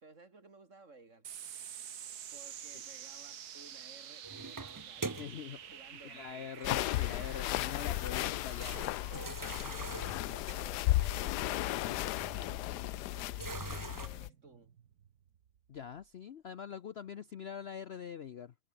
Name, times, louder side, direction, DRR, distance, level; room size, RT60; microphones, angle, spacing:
voice 1, 0.0-1.3 2.3-5.3 5.6-6.6 7.3-7.7 9.1-11.4 11.9-13.4 14.0-14.8, right 3 dB, 50° right, 3.4 m, -58 dB
sound 1, 1.2-16.0, right 9 dB, 70° right, 1.7 m, -50 dB
sound 2, 4.2-5.6 6.5-7.6 8.0-8.1 8.6-14.1, right 3 dB, 25° right, 0.4 m, -45 dB
voice 2, 5.1-5.6 6.0-8.8 9.1-9.2 15.7-18.5, left 8 dB, 55° left, 0.8 m, -44 dB
sound 3, 6.6-14.3, left 16 dB, 85° left, 1.2 m, -35 dB
omnidirectional pair, 1.7 m